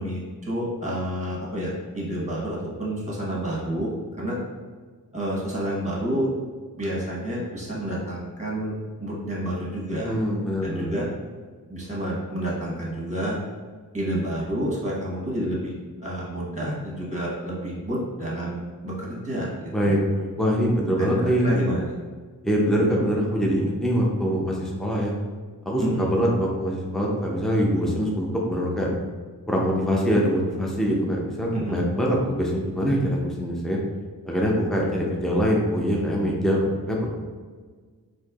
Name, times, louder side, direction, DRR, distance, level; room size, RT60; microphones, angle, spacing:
voice 1, 0.0-3.9 4.2-4.4 5.1-6.3 6.8-10.1 10.6-11.1 11.7-13.4 13.9-15.7 16.0-20.0 21.0-21.8 25.8-26.1 31.5-31.8, right 1 dB, 20° right, -4 dB, 1.1 m, -29 dB
voice 2, 10.0-10.9 19.7-21.6 22.4-25.1 25.7-28.9 29.5-33.8 34.2-37.1, equal, ahead, -2 dB, 0.6 m, -23 dB
4.3 x 2.7 x 2.4 m, 1.5 s
wide cardioid pair, 90°, 36 cm